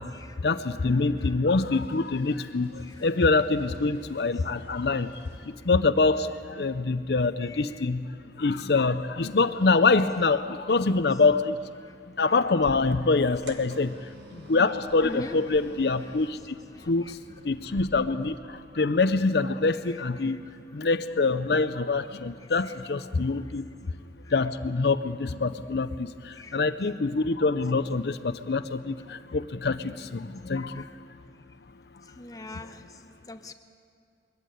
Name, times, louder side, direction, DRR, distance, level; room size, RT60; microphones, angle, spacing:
voice 1, 0.4-5.1 5.4-8.1 8.4-11.6 12.2-16.6 16.8-20.4 20.7-23.7 24.3-30.9, left 3 dB, 70° left, 12 dB, 0.6 m, -25 dB
voice 2, 0.9-1.4 2.8-3.5 4.3-4.4 5.7-5.8 6.1-6.3 7.4-7.9 8.5-8.9 9.4-9.8 11.1-11.2 11.8-11.9 12.3-12.4 13.5-13.7 15.0-15.6 16.0-16.1 16.7-17.4 19.8-20.8 22.4-22.8 23.3-23.4 24.2-24.5 26.3-26.6 29.0-29.1 30.5-30.9 32.0-33.5, left 2 dB, 20° left, 7 dB, 0.9 m, -46 dB
sound 1, 1.7-5.4, left 2 dB, 15° right, 4.9 m, -53 dB
sound 2, 12.6-17.8, right 1 dB, 85° right, 2.0 m, -47 dB
22.5 x 15.0 x 9.2 m, 2.3 s
head